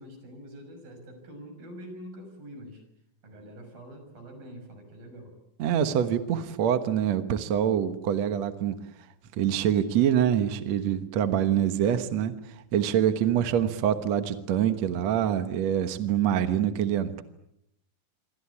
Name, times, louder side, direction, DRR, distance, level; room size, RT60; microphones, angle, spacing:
voice 1, 0.0-2.8 3.2-5.3, equal, 80° right, 6 dB, 8.0 m, -45 dB
voice 2, 5.6-8.8 9.4-17.2, right 9 dB, 60° right, 9 dB, 2.2 m, -25 dB
27.5 x 24.0 x 8.5 m, 0.78 s
omnidirectional pair, 4.1 m